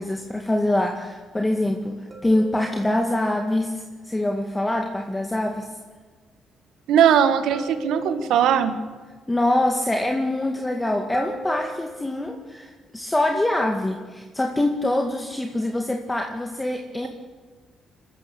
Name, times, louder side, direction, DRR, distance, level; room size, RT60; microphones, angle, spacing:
voice 1, 0.0-5.7 9.3-17.1, left 1 dB, 15° left, 2 dB, 2.1 m, -24 dB
sound 1, 2.1-3.2 7.5-8.7 11.1-12.4 15.7-15.9, right 1 dB, 25° right, 3.9 m, -38 dB
voice 2, 6.9-8.8, right 8 dB, 85° right, 10 dB, 1.8 m, -19 dB
24.5 x 13.5 x 8.4 m, 1.4 s
cardioid pair, 90°, 0 cm